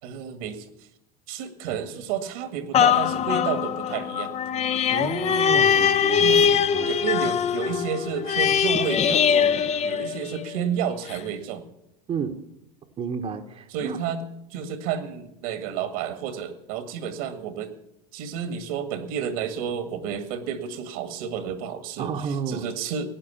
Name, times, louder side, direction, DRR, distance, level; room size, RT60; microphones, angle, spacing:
voice 1, 0.0-0.7 1.3-4.3 6.2-11.7 13.7-14.2 14.5-17.7 18.1-23.1, right 7 dB, 65° right, 1.9 m, -31 dB
sound 1, 2.7-10.6 11.1-11.2, left 7 dB, 35° left, 0.7 m, -22 dB
voice 2, 4.9-6.9 12.1-12.4 13.0-14.0 22.0-22.7, right 6 dB, 35° right, 1.1 m, -31 dB
16.5 x 9.4 x 7.1 m
hypercardioid pair, 85°, 19 cm